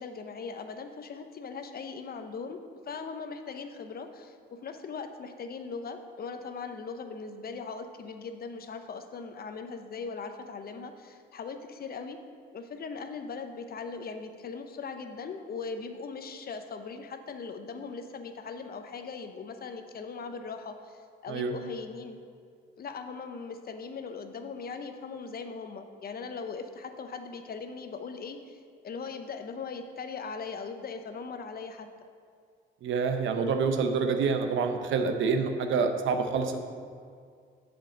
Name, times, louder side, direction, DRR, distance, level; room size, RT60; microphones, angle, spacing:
voice 1, 0.0-2.6 2.9-12.2 12.5-22.2 22.7-31.9, left 5 dB, 50° left, 7 dB, 0.8 m, -39 dB
voice 2, 32.8-36.6, right 5 dB, 75° right, 6 dB, 0.9 m, -27 dB
7.3 x 5.3 x 7.3 m, 2.2 s
cardioid pair, 90°, 20 cm